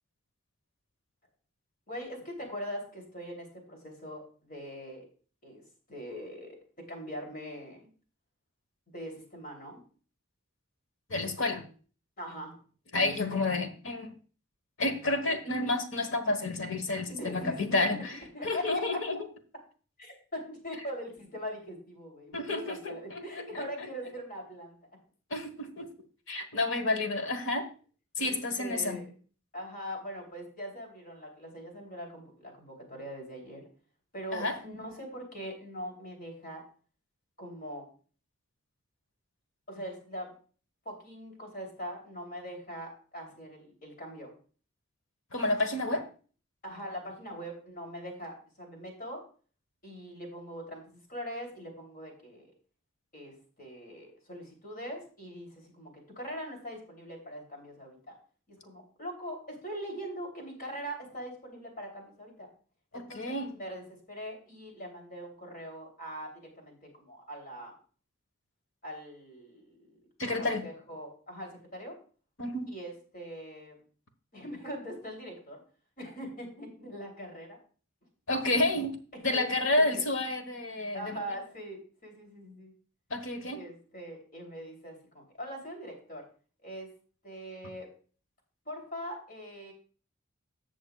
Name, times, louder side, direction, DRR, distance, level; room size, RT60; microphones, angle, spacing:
voice 1, 1.9-5.0 5.4-5.6 5.9-6.6 6.9-7.9 8.9-9.8 12.2-12.6 17.1-18.0 18.3-19.0 20.0-24.8 28.2-29.1 29.5-33.6 34.1-36.6 37.4-37.8 39.7-40.3 40.8-44.3 46.6-49.2 49.8-52.5 53.1-58.1 58.5-62.5 62.9-66.3 66.6-67.7 68.8-70.0 70.4-71.9 72.7-73.7 74.3-75.6 76.0-77.6 79.3-79.5 79.9-80.0 80.9-82.7 83.5-86.2 86.6-86.9 87.2-87.9 88.6-89.7, equal, 45° left, 1 dB, 3.1 m, -42 dB
voice 2, 11.1-11.7 12.9-14.1 14.8-18.2 18.4-19.2 22.3-23.7 25.3-25.9 26.3-27.7 28.2-29.0 34.3-34.6 45.3-46.1 62.9-63.5 70.2-70.6 72.4-72.7 78.3-79.0 79.2-81.2 83.1-83.6, left 2 dB, 65° left, 8 dB, 1.2 m, -30 dB
15.5 x 6.3 x 2.3 m, 0.39 s
head